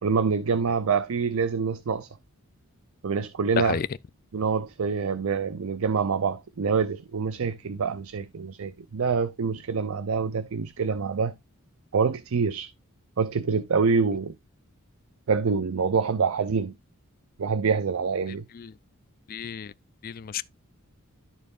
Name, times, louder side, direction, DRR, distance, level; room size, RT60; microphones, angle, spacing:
voice 1, 0.0-2.1 3.0-3.8 4.3-11.3 11.9-12.7 13.2-14.3 15.3-16.7 17.4-18.5, right 5 dB, 70° right, 0.5 m, -26 dB
voice 2, 3.6-3.9 18.3-18.7 19.3-19.7 20.0-20.4, left 7 dB, 40° left, 0.3 m, -31 dB
13.0 x 4.4 x 2.4 m
head